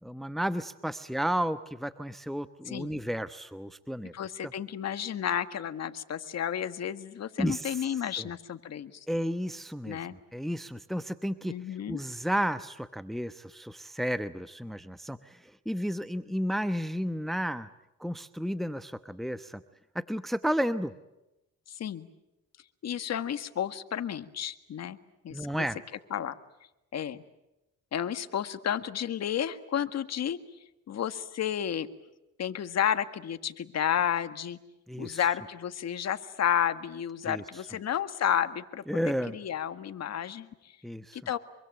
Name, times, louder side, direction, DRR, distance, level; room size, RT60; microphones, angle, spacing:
voice 1, 0.0-4.1 7.4-7.9 8.2-8.3 9.1-10.0 10.3-11.5 11.9-17.7 18.0-19.6 19.9-20.9 25.3-25.8 34.9-35.2 37.2-37.4 38.9-39.4 40.8-41.2, equal, ahead, 11 dB, 1.0 m, -32 dB
voice 2, 2.7-3.0 4.1-9.1 9.9-10.1 11.5-12.0 21.7-22.1 22.8-25.0 25.2-25.7 26.1-26.3 26.9-27.2 27.9-30.4 30.9-31.9 32.4-34.6 35.0-39.0 39.3-40.7 41.1-41.4, left 9 dB, 60° left, 10 dB, 1.8 m, -31 dB
25.5 x 24.0 x 9.0 m, 0.95 s
cardioid pair, 90°, 30 cm